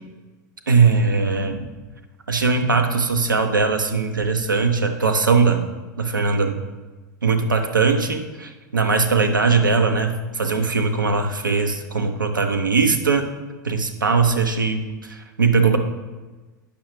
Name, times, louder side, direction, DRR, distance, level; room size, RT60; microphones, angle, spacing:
voice 1, 0.7-1.7 2.3-5.6 6.0-6.6 7.2-13.3 13.6-15.8, right 4 dB, 80° right, 6 dB, 0.7 m, -20 dB
8.5 x 6.3 x 3.2 m, 1.2 s
figure-of-eight pair, 85°, 11 cm